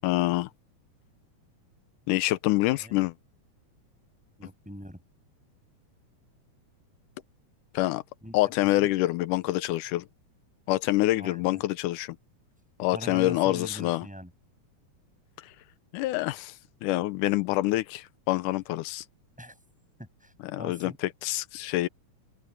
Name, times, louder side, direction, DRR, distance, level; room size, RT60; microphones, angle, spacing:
voice 1, 0.0-0.5 2.1-3.1 7.7-8.0 8.3-10.1 10.7-12.2 12.8-14.1 15.9-16.5 16.8-19.0 20.4-21.9, left 17 dB, 85° left, 2.2 m, -26 dB
voice 2, 2.6-3.0 4.4-5.0 8.2-8.4 8.8-8.9 11.1-11.6 12.9-14.3 19.4-19.6 20.0-21.0, equal, ahead, 7.4 m, -42 dB
open air
omnidirectional pair, 3.6 m